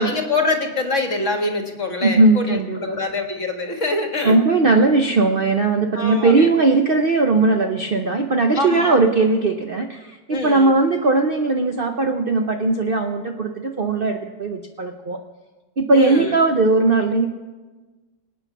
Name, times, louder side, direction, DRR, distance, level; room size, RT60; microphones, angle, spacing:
voice 1, 0.0-4.4 5.9-6.5 8.5-9.0 10.3-10.7 15.9-16.4, left 2 dB, 40° left, 3 dB, 1.9 m, -24 dB
voice 2, 2.0-3.0 4.2-15.2 15.8-17.3, right 3 dB, 45° right, 4 dB, 0.7 m, -18 dB
25.0 x 8.8 x 5.9 m, 1.3 s
omnidirectional pair, 2.0 m